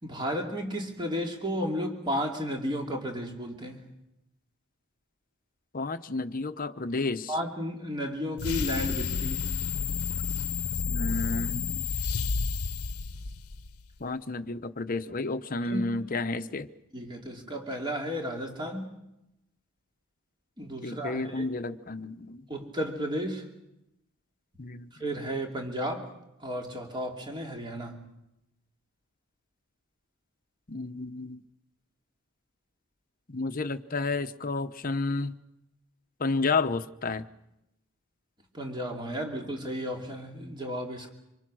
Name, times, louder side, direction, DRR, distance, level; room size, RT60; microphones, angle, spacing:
voice 1, 0.0-3.9 7.3-9.6 15.6-15.8 16.9-18.9 20.6-21.5 22.5-23.5 24.9-26.1 26.4-28.0 38.5-41.1, equal, 20° right, 2 dB, 2.8 m, -33 dB
voice 2, 5.7-7.3 10.9-11.8 14.0-16.7 20.8-22.4 24.6-24.9 30.7-31.4 33.3-35.4 36.2-37.3, left 3 dB, 40° left, 10 dB, 0.9 m, -31 dB
sound 1, 8.4-13.8, left 5 dB, 85° left, 0.9 m, -30 dB
26.0 x 26.0 x 6.3 m, 0.87 s
head